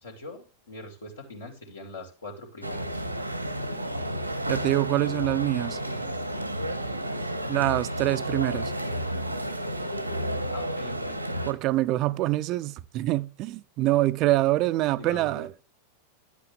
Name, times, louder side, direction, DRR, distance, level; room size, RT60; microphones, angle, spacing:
voice 1, 0.0-3.0 10.5-11.4 15.0-15.5, left 1 dB, 70° left, 2.5 m, -42 dB
sound 1, 2.6-11.5, right 1 dB, 90° right, 1.3 m, -31 dB
voice 2, 4.5-5.8 7.5-8.7 11.5-15.5, right 16 dB, 40° right, 0.5 m, -25 dB
10.5 x 8.3 x 3.3 m
figure-of-eight pair, 90°, 0 cm